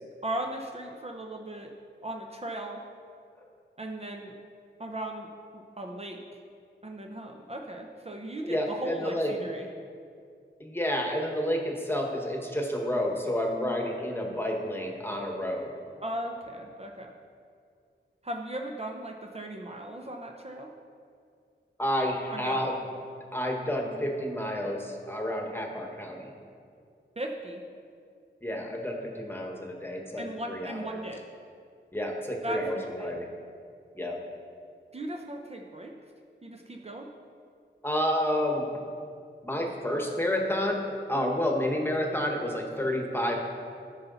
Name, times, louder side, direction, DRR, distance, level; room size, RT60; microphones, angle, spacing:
voice 1, 0.2-1.7 2.0-2.8 3.8-4.3 4.8-5.3 5.5-6.4 6.8-9.7 16.0-17.1 18.2-20.7 22.3-22.6 27.2-27.6 30.2-31.2 32.4-33.1 34.9-35.9 36.4-37.1 41.1-41.4, right 1 dB, 35° right, 1 dB, 0.7 m, -37 dB
voice 2, 8.4-9.3 10.6-15.7 21.8-22.7 23.3-26.3 28.4-31.0 31.9-33.3 33.9-34.2 37.8-38.7 39.4-40.8 41.1-43.4, equal, 10° left, 1 dB, 1.3 m, -30 dB
14.0 x 5.7 x 4.0 m, 2.3 s
wide cardioid pair, 95°, 19 cm